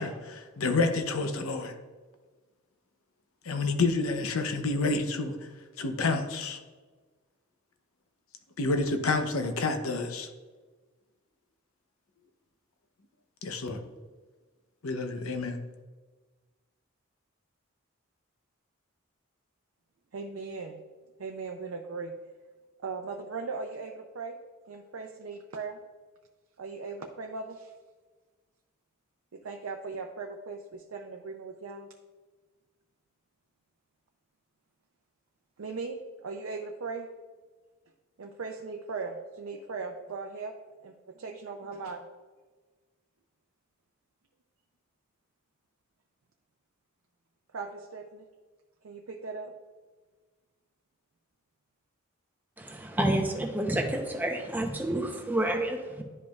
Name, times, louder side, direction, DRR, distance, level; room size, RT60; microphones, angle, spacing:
voice 1, 0.0-1.7 3.4-5.4 5.8-6.6 8.6-10.3 13.4-13.8 14.8-15.6, left 3 dB, 80° left, 7 dB, 0.7 m, -29 dB
voice 2, 20.1-20.8 21.2-22.1 22.8-24.4 24.7-25.8 26.6-27.7 29.3-31.9 35.6-37.1 38.2-40.5 40.8-42.1 47.5-48.2 48.8-49.5, right 4 dB, 85° right, 3 dB, 0.5 m, -38 dB
voice 3, 52.6-56.0, right 1 dB, 10° right, 2 dB, 0.7 m, -29 dB
10.5 x 5.1 x 2.3 m, 1.3 s
head